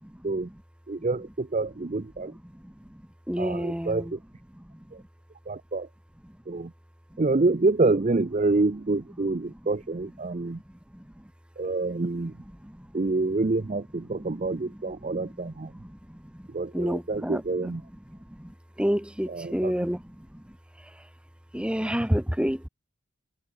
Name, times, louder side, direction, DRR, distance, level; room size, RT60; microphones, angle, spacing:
voice 1, 0.9-2.3 3.4-4.2 4.9-5.0 5.5-5.9 6.5-6.7 7.2-10.6 11.6-12.4 12.9-15.7 16.5-17.8 19.3-19.7, right 3 dB, 35° right, 0.5 m, -27 dB
voice 2, 2.3-4.1 4.5-5.1 6.2-6.6 7.1-7.2 9.5-9.6 10.3-11.3 12.6-12.9 14.2-14.8 15.0-15.4 15.7-16.5 16.7-17.8 18.1-21.1 21.5-22.7, equal, 5° right, 1.0 m, -32 dB
open air
head